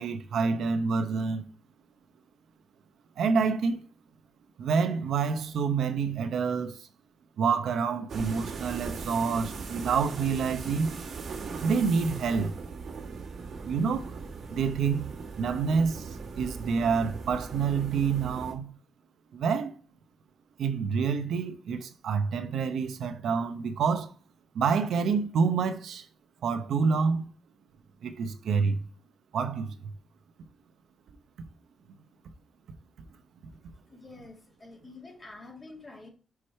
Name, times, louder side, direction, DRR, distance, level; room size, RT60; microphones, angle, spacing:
voice 1, 0.0-1.4 3.2-3.8 4.6-6.8 7.4-10.9 11.6-12.5 13.6-14.2 14.5-15.1 15.4-16.1 16.4-18.7 19.3-19.7 20.6-24.1 24.5-26.0 26.4-27.3 28.0-28.9 29.3-29.7, right 5 dB, 85° right, 0.8 m, -27 dB
sound 1, 8.1-18.5, right 4 dB, 70° right, 1.6 m, -39 dB
voice 2, 33.9-36.1, left 3 dB, 30° left, 2.0 m, -47 dB
5.9 x 4.9 x 4.3 m
cardioid pair, 95°, 0 cm